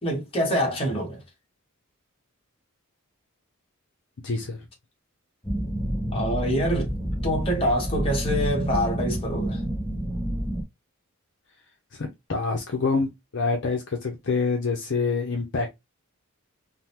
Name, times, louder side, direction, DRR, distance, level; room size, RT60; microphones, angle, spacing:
voice 1, 0.0-1.2 6.1-6.9 7.2-9.6, equal, 25° left, 1.1 m, -26 dB
voice 2, 4.2-4.7 11.9-15.8, left 4 dB, 55° left, 0.6 m, -27 dB
sound 1, 5.4-10.6, equal, 10° left, 0.7 m, -28 dB
3.6 x 2.0 x 2.8 m
head